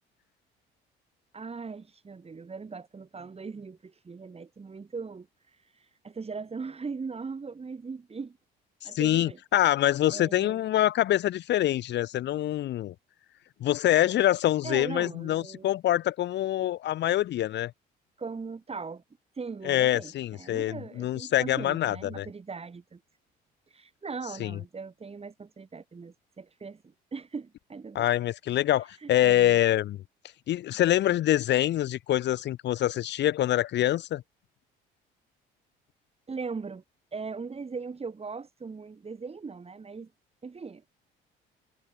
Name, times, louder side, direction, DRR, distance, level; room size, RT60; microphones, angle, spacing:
voice 1, 1.3-5.3 6.0-8.4 8.8-9.4 10.1-10.6 14.6-15.7 18.2-19.0 19.4-23.0 23.7-28.1 29.0-29.6 36.3-36.8 37.1-40.1 40.4-40.9, right 4 dB, 30° right, 7.5 m, -39 dB
voice 2, 8.8-12.9 13.6-17.7 19.6-22.3 24.4-24.6 27.9-30.0 30.5-34.2, left 13 dB, 60° left, 1.0 m, -25 dB
supercardioid pair, 80°, 21 cm